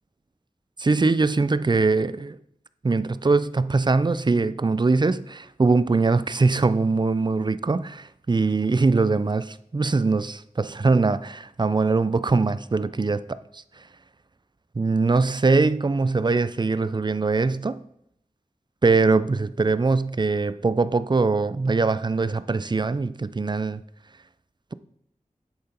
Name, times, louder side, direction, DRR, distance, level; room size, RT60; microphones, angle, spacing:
voice 1, 0.8-2.4 2.8-13.6 14.8-17.8 18.8-23.8, right 3 dB, 30° right, 0.4 m, -22 dB
7.7 x 6.7 x 4.4 m
wide cardioid pair, 45°, 14 cm